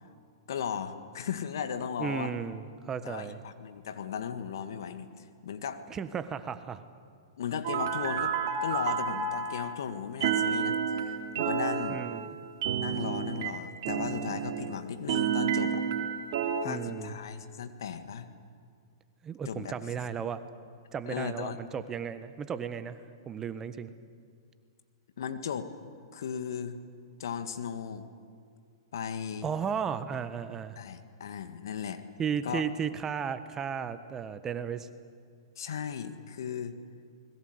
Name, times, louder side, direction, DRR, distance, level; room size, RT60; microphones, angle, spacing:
voice 1, 0.5-2.3 3.0-5.8 7.4-8.3 8.6-12.0 12.8-15.8 16.6-18.3 19.5-19.7 21.1-21.6 25.2-25.7 26.1-26.8 27.2-28.1 28.9-29.5 30.8-32.0 32.4-32.6 35.6-36.7, left 7 dB, 65° left, 9 dB, 1.9 m, -36 dB
voice 2, 2.0-3.4 5.9-6.8 11.9-12.3 16.6-17.1 19.2-20.4 20.9-23.0 23.2-23.9 29.4-30.8 32.2-34.9, right 7 dB, 20° right, 12 dB, 1.4 m, -34 dB
sound 1, 7.6-9.7 10.2-14.8 15.1-16.6, right 7 dB, 55° right, 3.0 m, -30 dB
27.0 x 21.0 x 8.1 m, 2.2 s
hypercardioid pair, 110°, 2 cm